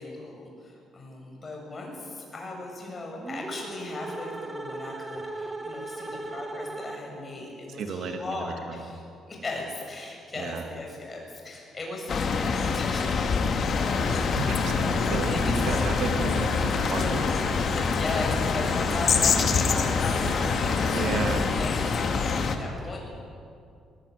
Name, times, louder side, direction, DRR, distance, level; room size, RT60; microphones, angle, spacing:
voice 1, 0.0-9.0 9.3-15.9 17.8-23.2, left 2 dB, 25° left, 0 dB, 7.5 m, -37 dB
sound 1, 3.2-7.4, right 2 dB, 15° right, 2.0 m, -37 dB
voice 2, 7.7-8.9 10.4-10.6 14.3-17.3 19.1-19.6 20.9-21.5, right 5 dB, 65° right, 5 dB, 2.3 m, -33 dB
sound 2, 12.1-22.6, left 5 dB, 45° left, 2.3 m, -26 dB
Stream, 13.7-21.4, left 3 dB, 70° left, 6.1 m, -32 dB
23.0 x 22.0 x 9.9 m, 2.4 s
cardioid pair, 145°, 0 cm